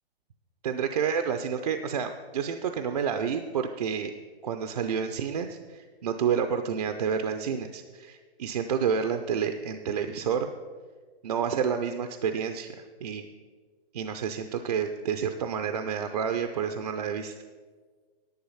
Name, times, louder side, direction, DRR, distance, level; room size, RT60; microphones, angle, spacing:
voice 1, 0.6-4.1 4.4-10.5 11.2-13.3 13.9-17.4, right 7 dB, 40° right, 7 dB, 0.5 m, -29 dB
10.5 x 9.2 x 5.5 m, 1.5 s
hypercardioid pair, 165°, 31 cm